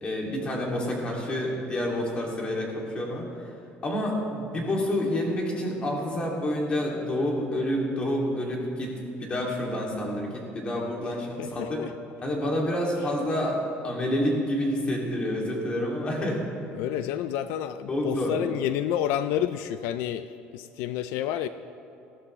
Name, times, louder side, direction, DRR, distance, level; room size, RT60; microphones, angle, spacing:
voice 1, 0.0-3.3 3.8-11.8 12.2-16.4 17.9-18.3, left 1 dB, 25° left, -2 dB, 2.7 m, -28 dB
voice 2, 11.4-11.9 16.7-21.5, left 11 dB, 85° left, 12 dB, 0.4 m, -29 dB
19.5 x 14.0 x 3.3 m, 2.8 s
cardioid pair, 150°, 4 cm